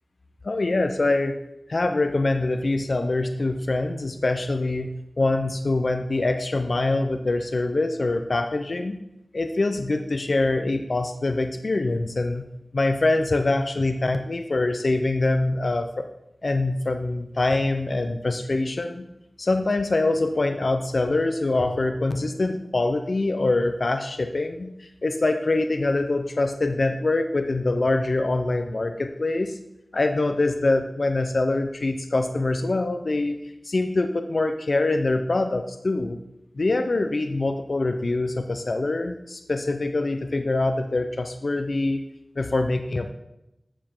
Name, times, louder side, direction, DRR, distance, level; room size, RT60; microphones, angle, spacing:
voice 1, 0.4-1.4 1.7-9.0 9.3-12.5 12.7-16.1 16.4-19.1 19.4-29.6 29.9-33.4 33.6-36.2 36.6-42.0 42.4-43.1, left 2 dB, 65° left, 6 dB, 0.8 m, -24 dB
11.5 x 7.0 x 3.8 m, 0.87 s
cardioid pair, 40°, 0 cm